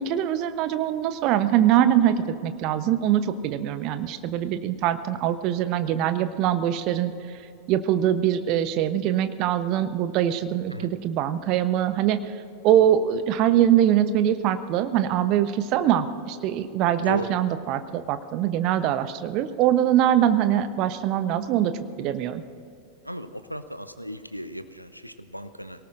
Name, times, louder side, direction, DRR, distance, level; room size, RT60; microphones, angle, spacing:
voice 1, 0.0-7.1 7.7-12.2 12.6-21.7 22.0-22.4, right 11 dB, 40° right, 11 dB, 0.9 m, -23 dB
voice 2, 17.0-17.3 23.0-25.9, equal, 90° right, 11 dB, 0.7 m, -35 dB
24.0 x 18.5 x 2.6 m, 2.5 s
figure-of-eight pair, 90°, 0 cm